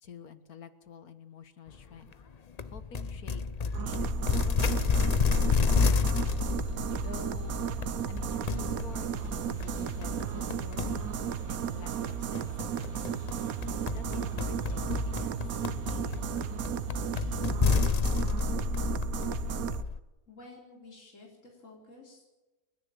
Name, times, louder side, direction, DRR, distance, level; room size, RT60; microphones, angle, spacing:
voice 1, 0.0-2.1 2.7-6.3 6.9-7.6 8.1-11.1 11.5-16.4, left 6 dB, 80° left, 11 dB, 1.8 m, -49 dB
sound 1, 2.6-20.0, left 5 dB, 40° left, 0.6 m, -31 dB
sound 2, 3.7-19.8, right 10 dB, 70° right, 1.3 m, -35 dB
sound 3, 5.1-18.6, right 1 dB, 55° right, 7.0 m, -60 dB
voice 2, 20.3-22.3, left 2 dB, 55° left, -2 dB, 4.6 m, -52 dB
29.5 x 10.5 x 8.9 m, 1.1 s
omnidirectional pair, 1.5 m